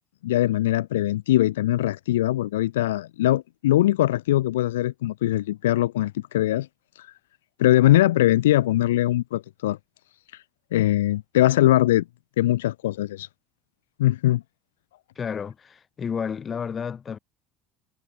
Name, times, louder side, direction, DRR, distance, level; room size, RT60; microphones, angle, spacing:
voice 1, 0.2-6.7 7.0-7.1 7.6-9.8 10.3-10.4 10.7-12.0 12.4-13.3 14.0-14.4, left 14 dB, 70° left, 0.5 m, -21 dB
voice 2, 15.1-17.2, left 7 dB, 30° left, 1.2 m, -31 dB
figure-of-eight pair, 60°, 0 cm